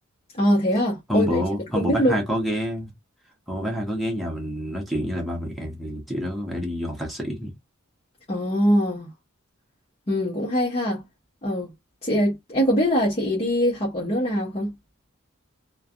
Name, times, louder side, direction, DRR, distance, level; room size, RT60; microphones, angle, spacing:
voice 1, 0.4-1.4 1.8-2.2 8.3-9.1 10.1-11.0 11.4-11.7 12.0-14.7, equal, 30° left, 0.9 m, -22 dB
voice 2, 1.1-2.9 3.5-7.5, equal, ahead, 0.9 m, -27 dB
3.2 x 2.2 x 2.5 m
head